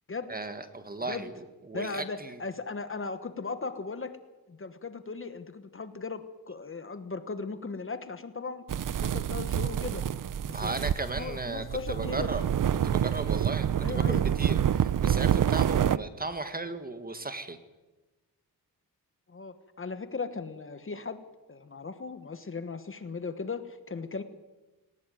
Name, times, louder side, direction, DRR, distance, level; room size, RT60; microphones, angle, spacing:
voice 1, 0.3-2.4 10.5-12.4 12.8-17.6, right 2 dB, 25° right, 9 dB, 1.7 m, -36 dB
voice 2, 1.7-4.2 4.5-8.7 9.0-10.0 10.5-10.8 11.0-12.3 13.8-14.3 19.3-21.2 21.5-24.2, left 4 dB, 35° left, 10 dB, 1.3 m, -37 dB
sound 1, 8.7-16.0, right 9 dB, 55° right, 0.7 m, -27 dB
19.5 x 19.0 x 9.3 m, 1.1 s
wide cardioid pair, 140°, 38 cm